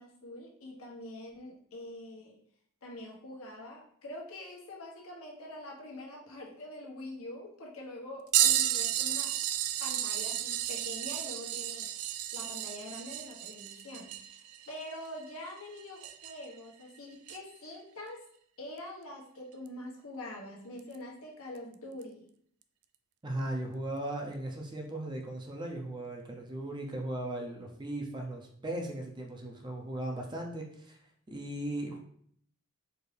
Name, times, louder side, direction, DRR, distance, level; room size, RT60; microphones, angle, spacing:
voice 1, 0.0-2.4 2.8-9.3 9.8-18.2 18.6-22.3, left 1 dB, 75° left, -2 dB, 1.1 m, -45 dB
sound 1, 8.3-16.5 17.3-17.4 19.7-19.8 20.8-21.0 22.0-22.1, right 11 dB, 85° right, 0.3 m, -32 dB
voice 2, 23.2-31.0 31.3-32.0, right 1 dB, 20° right, 1 dB, 0.5 m, -37 dB
4.4 x 2.6 x 3.3 m, 0.63 s
head